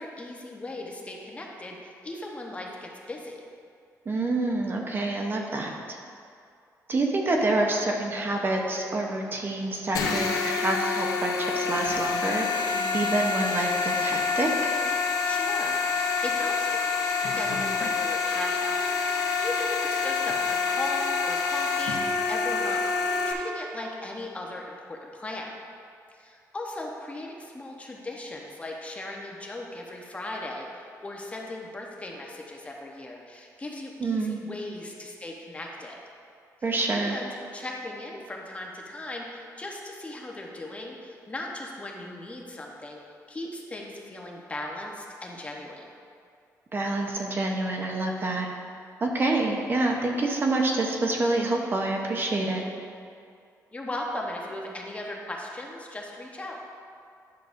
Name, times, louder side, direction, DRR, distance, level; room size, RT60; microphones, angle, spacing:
voice 1, 0.0-3.4 15.2-16.8 17.3-18.8 19.1-25.5 26.1-36.0 36.9-43.0 43.3-45.9 53.7-56.6, left 2 dB, 20° left, -1 dB, 1.0 m, -37 dB
voice 2, 4.1-6.0 6.9-14.7 34.0-34.4 36.6-37.2 46.7-48.5 49.0-52.6, right 2 dB, 35° right, 1 dB, 0.8 m, -27 dB
sound 1, 9.9-23.3, left 5 dB, 85° left, 0.8 m, -27 dB
10.5 x 6.6 x 2.6 m, 2.4 s
cardioid pair, 110°, 6 cm